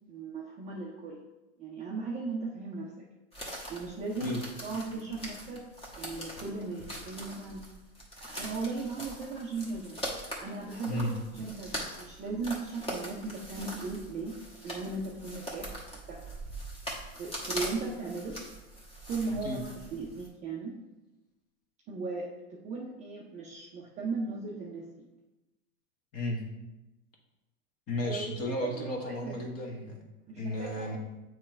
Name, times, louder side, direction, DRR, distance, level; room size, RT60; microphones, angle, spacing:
voice 1, 0.1-1.2 1.6-2.9 3.7-5.6 6.0-7.6 8.2-10.0 10.4-14.4 14.6-16.2 17.2-18.4 19.1-20.7 21.9-24.9 28.0-28.3 28.6-29.4 30.3-30.9, right 3 dB, 15° right, -3 dB, 0.5 m, -37 dB
sound 1, 3.3-20.3, right 1 dB, 15° left, 1.4 m, -42 dB
voice 2, 27.9-30.0 30.4-31.0, left 1 dB, 30° left, 0 dB, 1.4 m, -33 dB
7.4 x 3.2 x 4.6 m, 1.0 s
hypercardioid pair, 125°, 46 cm